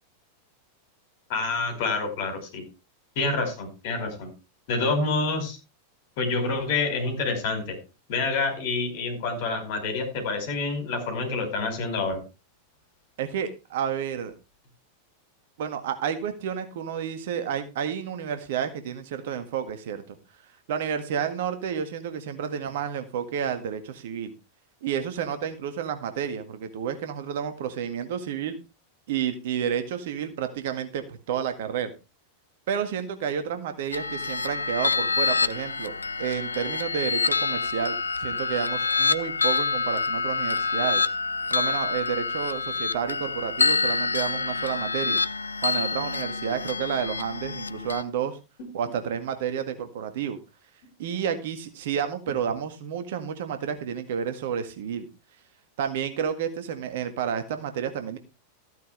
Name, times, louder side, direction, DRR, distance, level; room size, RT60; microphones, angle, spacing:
voice 1, 1.3-2.6 3.1-4.3 4.7-5.6 6.2-7.8 8.1-12.2, left 3 dB, 50° left, 6 dB, 4.7 m, -27 dB
voice 2, 13.2-14.3 15.6-20.2 20.7-24.3 24.8-28.6 29.1-31.9 32.7-41.0 41.5-45.2 45.6-48.4 48.7-50.4 51.0-55.1 55.8-58.2, right 8 dB, 55° right, 9 dB, 1.7 m, -30 dB
sound 1, 33.9-48.0, left 4 dB, 75° left, 0.5 m, -27 dB
14.5 x 9.3 x 3.3 m, 0.29 s
figure-of-eight pair, 90°, 0 cm